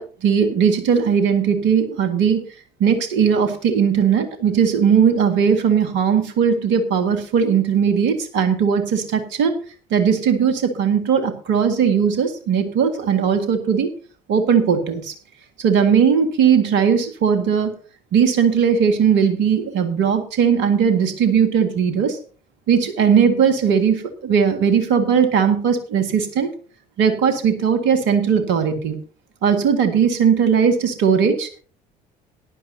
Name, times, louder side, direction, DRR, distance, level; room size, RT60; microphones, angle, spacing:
voice 1, 0.0-2.4 2.8-9.6 9.9-13.9 14.3-15.1 15.6-17.7 18.1-22.2 22.7-26.5 27.0-29.0 29.4-31.5, right 7 dB, 60° right, 8 dB, 2.0 m, -18 dB
17.5 x 10.5 x 2.8 m, 0.39 s
figure-of-eight pair, 55°, 21 cm